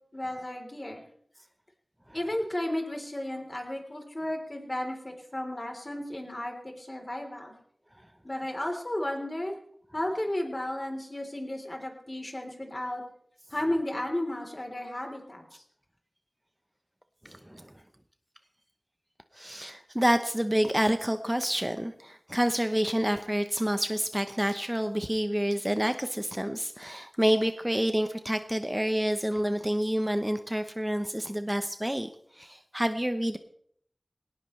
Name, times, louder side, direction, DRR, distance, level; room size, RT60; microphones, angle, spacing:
voice 1, 0.1-1.0 2.1-7.5 8.2-9.6 9.9-13.0 13.5-15.6, left 1 dB, 35° left, 2 dB, 3.6 m, -33 dB
voice 2, 17.2-17.7 19.3-33.4, equal, 10° right, 8 dB, 0.8 m, -28 dB
19.0 x 18.5 x 3.2 m, 0.67 s
wide cardioid pair, 55°, 0 cm